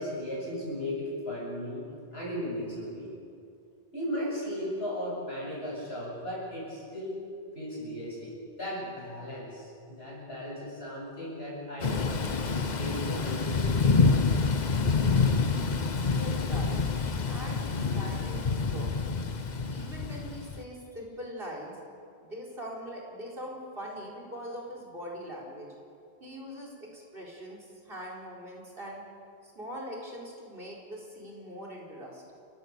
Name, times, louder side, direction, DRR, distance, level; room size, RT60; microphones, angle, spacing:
voice 1, 0.0-1.8 2.1-3.1 3.9-7.2 7.5-12.3 12.7-14.3, equal, 75° left, -5 dB, 8.2 m, -36 dB
Thunder / Rain, 11.8-20.6, left 4 dB, 45° left, 1.1 m, -27 dB
voice 2, 16.1-16.8 17.3-18.9 19.7-21.8 22.2-25.7 26.2-29.0 29.4-32.3, equal, 60° right, -1 dB, 4.6 m, -42 dB
29.0 x 16.0 x 6.7 m, 2.4 s
omnidirectional pair, 1.1 m